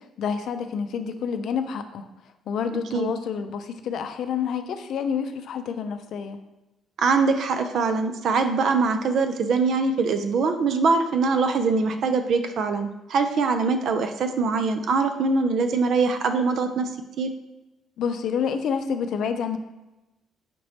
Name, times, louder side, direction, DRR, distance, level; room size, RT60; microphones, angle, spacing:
voice 1, 0.2-2.1 2.5-6.4 18.0-19.6, left 7 dB, 70° left, 8 dB, 0.4 m, -28 dB
voice 2, 7.0-16.9 17.2-17.3, right 4 dB, 65° right, 7 dB, 0.4 m, -23 dB
5.0 x 2.9 x 3.2 m, 0.99 s
cardioid pair, 85°, 0 cm